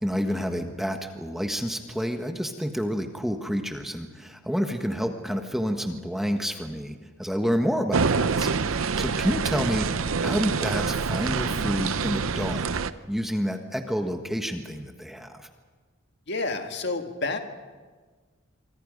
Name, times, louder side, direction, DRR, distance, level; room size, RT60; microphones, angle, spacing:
voice 1, 0.0-9.9 10.2-12.7 13.1-15.5, equal, ahead, 4 dB, 1.4 m, -29 dB
sound 1, 7.9-12.9, right 5 dB, 85° right, 0.7 m, -26 dB
voice 2, 16.3-17.4, left 3 dB, 55° left, 5 dB, 1.8 m, -29 dB
26.0 x 24.5 x 5.2 m, 1.4 s
head